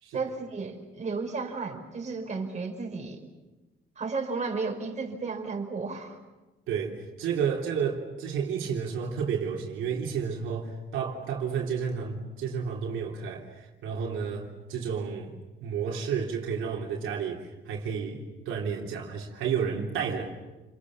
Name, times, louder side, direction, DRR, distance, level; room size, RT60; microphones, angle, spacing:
voice 1, 0.1-3.3 4.0-6.2, right 4 dB, 35° right, 5.3 m, -33 dB
voice 2, 6.7-15.3 15.6-20.3, right 6 dB, 90° right, 3.5 m, -31 dB
29.5 x 23.0 x 7.4 m
cardioid pair, 90°, 20 cm